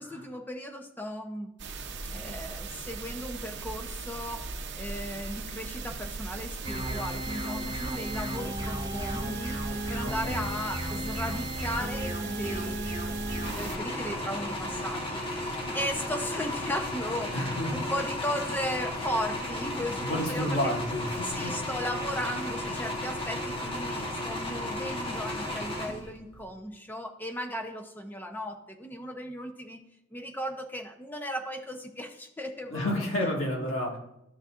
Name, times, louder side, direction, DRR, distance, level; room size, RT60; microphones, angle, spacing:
voice 1, 0.0-1.5 2.1-4.5 4.8-9.6 9.9-20.7 21.2-29.8 30.1-33.3, equal, 10° left, 4 dB, 0.7 m, -36 dB
sound 1, 1.6-13.8, right 4 dB, 60° right, 0.7 m, -38 dB
sound 2, 6.6-13.5, equal, 25° right, 1.7 m, -34 dB
voice 2, 10.0-10.4 17.3-17.8 20.0-21.5 32.7-34.0, left 1 dB, 70° left, -1 dB, 1.9 m, -31 dB
sound 3, 13.4-26.4, left 1 dB, 25° left, 1.2 m, -34 dB
13.0 x 6.3 x 2.5 m, 0.85 s
head